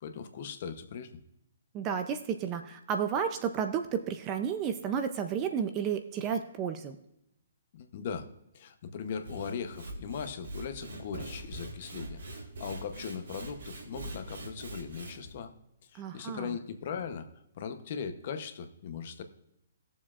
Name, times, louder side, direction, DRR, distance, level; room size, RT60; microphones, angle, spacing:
voice 1, 0.0-1.2 7.7-8.3 8.5-12.2 12.6-15.5 15.9-17.3 17.6-19.2, left 6 dB, 35° left, 8 dB, 0.8 m, -39 dB
voice 2, 1.7-7.0 16.0-16.5, right 7 dB, 15° right, 7 dB, 0.4 m, -32 dB
Sawing / Wood, 9.1-15.3, right 2 dB, 80° right, 2.3 m, -43 dB
18.5 x 7.2 x 2.4 m, 0.81 s
hypercardioid pair, 175°, 0 cm